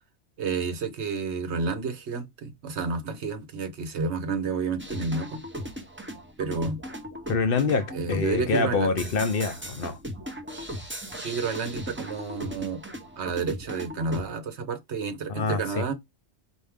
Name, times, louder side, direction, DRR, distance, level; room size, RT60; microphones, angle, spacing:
voice 1, 0.4-5.4 6.4-6.8 7.9-9.0 11.2-12.8 13.2-15.9, right 4 dB, 75° right, 1.2 m, -30 dB
sound 1, 4.8-14.3, equal, 10° right, 0.7 m, -38 dB
voice 2, 7.3-10.0 15.3-15.8, left 4 dB, 60° left, 0.8 m, -26 dB
4.5 x 2.6 x 3.5 m
omnidirectional pair, 1.2 m